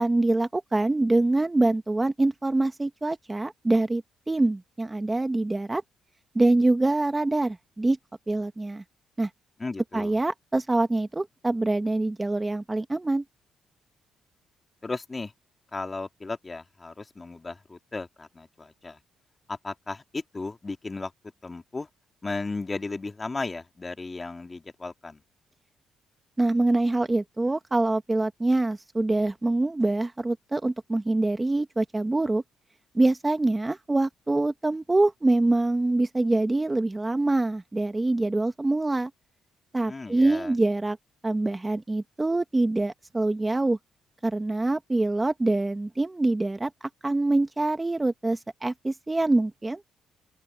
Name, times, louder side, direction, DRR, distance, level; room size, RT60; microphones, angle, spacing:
voice 1, 0.0-5.8 6.3-8.0 8.3-8.8 9.2-9.3 9.9-13.2 26.4-32.4 32.9-39.1 39.7-41.0 41.2-43.8 44.2-49.8, right 2 dB, 15° right, 1.3 m, -25 dB
voice 2, 9.6-10.2 14.8-15.3 15.7-19.0 19.5-21.1 21.4-21.9 22.2-25.2 39.9-40.6, left 3 dB, 25° left, 2.2 m, -35 dB
open air
cardioid pair, 90°, 0 cm